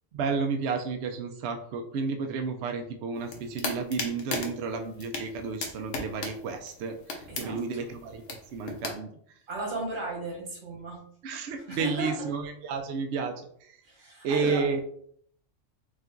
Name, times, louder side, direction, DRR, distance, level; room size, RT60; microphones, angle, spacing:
voice 1, 0.1-8.2 8.5-9.4 11.2-13.8 14.2-14.8, right 5 dB, 65° right, 5 dB, 0.8 m, -32 dB
sound 1, 3.1-8.9, left 3 dB, 75° left, 1.3 m, -37 dB
voice 2, 7.3-7.9 9.5-11.0 11.7-12.3 13.8-14.7, right 2 dB, 90° right, -2 dB, 2.0 m, -35 dB
5.0 x 2.5 x 3.7 m, 0.64 s
omnidirectional pair, 1.3 m